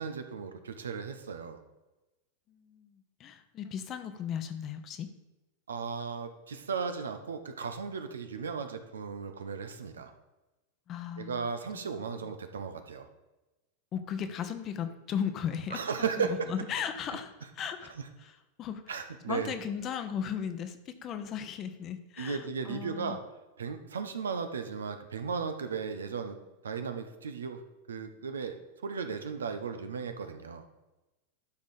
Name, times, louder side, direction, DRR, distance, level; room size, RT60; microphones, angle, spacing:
voice 1, 0.0-1.6 5.7-10.1 11.2-13.1 15.7-16.5 17.9-18.1 18.9-19.6 22.2-23.2 23.6-26.4 26.6-30.6, right 5 dB, 80° right, 7 dB, 0.8 m, -36 dB
voice 2, 2.5-5.1 10.9-11.4 11.7-11.9 13.9-17.9 18.2-18.3 18.6-19.0 19.3-23.2, left 8 dB, 35° left, 9 dB, 0.9 m, -36 dB
11.5 x 4.9 x 4.2 m, 1.1 s
hypercardioid pair, 95°, 0 cm